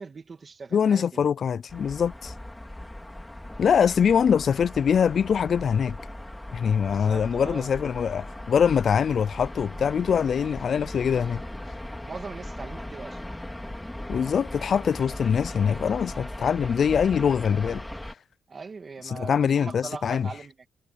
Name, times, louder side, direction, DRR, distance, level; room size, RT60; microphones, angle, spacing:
voice 1, 0.0-1.1 6.9-7.7 12.1-13.2 18.5-20.6, right 4 dB, 35° right, 2.0 m, -40 dB
voice 2, 0.7-2.3 3.6-6.0 6.5-11.4 14.1-17.8 19.1-20.3, left 7 dB, 50° left, 0.3 m, -23 dB
sound 1, 1.7-18.1, left 1 dB, 5° left, 2.6 m, -38 dB
wide cardioid pair, 145°, 0 cm